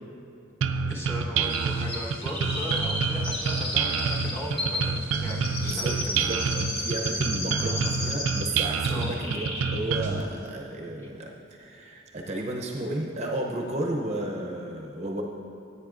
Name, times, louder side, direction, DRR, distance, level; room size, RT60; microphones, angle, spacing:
sound 1, 0.6-10.2, right 5 dB, 80° right, 0.4 m, -28 dB
voice 1, 0.7-6.0 6.4-6.6 8.9-9.2, equal, 10° left, -4 dB, 1.1 m, -37 dB
Chirp tweet, 1.5-8.6 8.8-9.8 10.0-10.1, left 1 dB, 50° left, 2.1 m, -33 dB
voice 2, 5.6-15.2, right 1 dB, 35° right, 0 dB, 0.6 m, -33 dB
15.0 x 8.4 x 2.5 m, 2.7 s
head